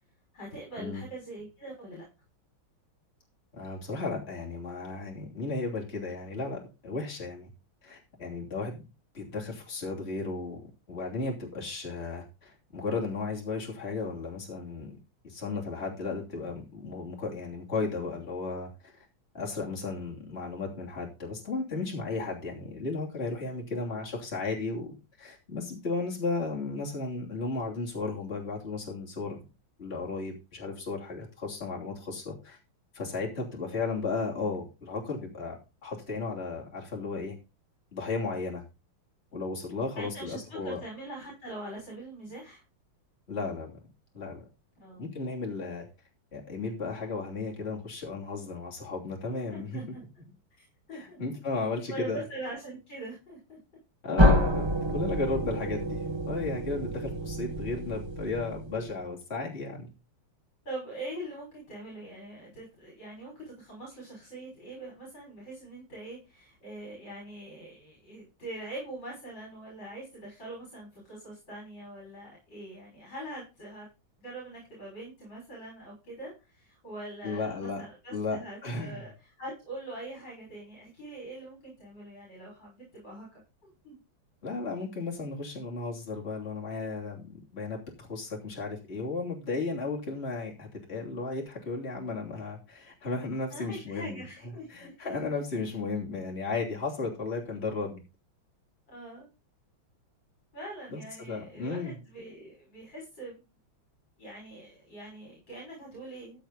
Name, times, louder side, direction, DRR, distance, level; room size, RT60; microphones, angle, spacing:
voice 1, 0.3-2.0 20.0-20.1 23.8-24.0 40.0-42.6 44.8-45.0 49.5-50.0 50.6-51.2 51.9-53.6 60.6-73.9 74.2-83.4 83.8-84.0 93.5-95.2 98.9-99.3 100.5-103.4 104.2-106.4, right 1 dB, 65° left, -3 dB, 6.7 m, -43 dB
voice 2, 3.5-7.5 7.8-8.8 9.1-15.0 15.2-19.0 19.3-29.4 29.8-32.6 32.9-37.3 37.9-38.6 39.3-40.8 43.3-43.7 44.1-44.4 45.0-45.9 46.3-49.8 50.9-52.2 54.0-59.9 77.2-77.8 78.1-79.0 84.4-98.0 100.9-102.0, left 3 dB, 30° left, -2 dB, 3.3 m, -34 dB
sound 1, 54.2-58.9, left 1 dB, 15° right, 1.4 m, -27 dB
15.0 x 6.5 x 4.0 m, 0.29 s
omnidirectional pair, 2.2 m